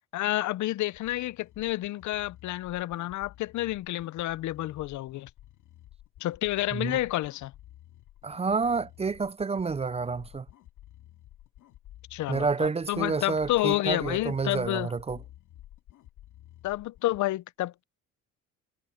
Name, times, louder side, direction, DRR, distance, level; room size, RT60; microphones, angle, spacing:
voice 1, 0.1-5.3 6.2-7.5 12.1-14.9 16.6-17.8, left 16 dB, 70° left, 0.6 m, -30 dB
sound 1, 0.8-17.2, left 13 dB, 90° left, 2.2 m, -52 dB
voice 2, 8.2-10.5 12.3-15.2, right 4 dB, 20° right, 0.4 m, -29 dB
cardioid pair, 90°, 30 cm